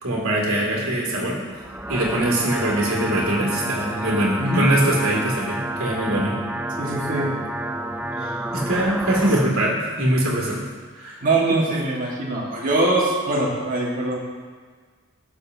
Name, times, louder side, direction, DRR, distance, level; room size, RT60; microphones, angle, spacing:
voice 1, 0.0-1.4 1.9-6.4 8.2-10.6 11.0-11.2, right 1 dB, 70° right, -3 dB, 2.3 m, -22 dB
sound 1, 1.5-9.5, right 1 dB, 5° right, 0.3 m, -30 dB
voice 2, 6.8-7.3 8.6-8.7 11.2-14.2, right 2 dB, 40° right, -4 dB, 1.6 m, -22 dB
15.0 x 6.7 x 2.7 m, 1.5 s
head